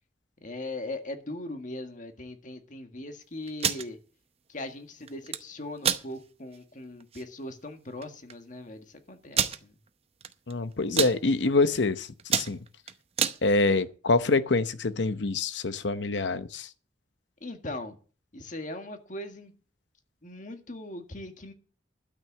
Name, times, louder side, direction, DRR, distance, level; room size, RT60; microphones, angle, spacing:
voice 1, 0.4-4.0 4.5-9.7 17.4-18.0 18.3-19.5 20.2-21.5, left 1 dB, 45° left, 1.7 m, -39 dB
sound 1, 3.5-3.9 5.1-5.4 5.8-6.0 6.5-6.6 7.0-7.2 8.0-8.1 8.3-8.4 9.3-9.6 10.2-10.5 10.8-11.1 11.7-11.9 12.2-13.4, right 8 dB, 35° right, 0.8 m, -27 dB
voice 2, 10.5-12.6 13.4-16.7, left 3 dB, 85° left, 0.8 m, -26 dB
12.5 x 6.0 x 7.9 m
head